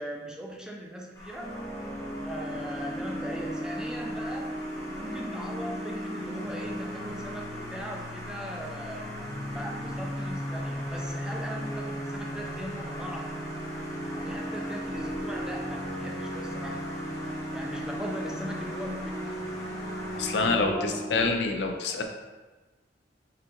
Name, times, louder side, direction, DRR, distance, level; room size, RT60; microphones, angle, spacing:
voice 1, 0.0-1.5 2.2-4.6 5.0-9.1 9.5-13.3 14.1-16.8 17.5-19.7 20.3-21.0 21.8-22.0, equal, 5° right, -1 dB, 0.4 m, -39 dB
sound 1, 1.1-20.5, left 1 dB, 15° left, 0.9 m, -43 dB
sound 2, 1.4-21.3, equal, 40° left, 0.9 m, -36 dB
voice 2, 20.1-22.0, left 3 dB, 65° left, 4 dB, 0.4 m, -27 dB
4.2 x 2.5 x 3.7 m, 1.2 s
head